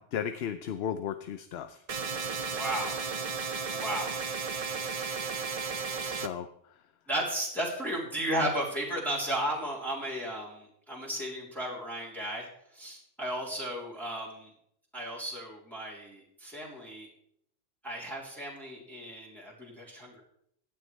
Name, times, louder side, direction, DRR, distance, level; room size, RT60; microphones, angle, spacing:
voice 1, 0.0-1.8 6.1-6.5, left 8 dB, 65° left, 10 dB, 0.8 m, -35 dB
sound 1, 1.9-6.3, right 5 dB, 35° right, 0.7 m, -34 dB
voice 2, 2.5-3.0 3.7-4.2 4.7-5.2 7.1-12.5 12.7-14.5 14.9-17.1 17.8-20.2, right 1 dB, ahead, -5 dB, 3.3 m, -34 dB
17.0 x 11.5 x 3.3 m, 0.72 s
omnidirectional pair, 1.3 m